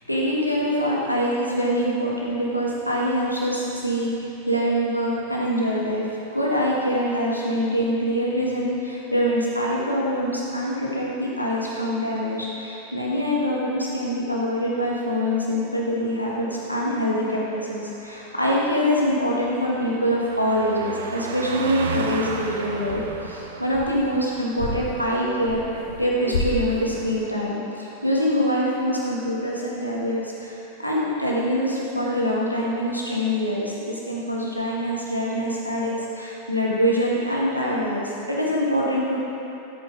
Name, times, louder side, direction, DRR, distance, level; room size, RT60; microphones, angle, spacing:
voice 1, 0.0-39.2, equal, 90° left, -5 dB, 1.9 m, -24 dB
Car passing by, 15.7-27.7 28.0-28.2, right 5 dB, 65° right, 0.8 m, -37 dB
sound 1, 22.2-22.5 22.8-24.2 24.6-26.0 26.3-27.2, left 2 dB, 65° left, 1.9 m, -32 dB
13.5 x 8.5 x 4.0 m, 2.8 s
figure-of-eight pair, 90°, 0 cm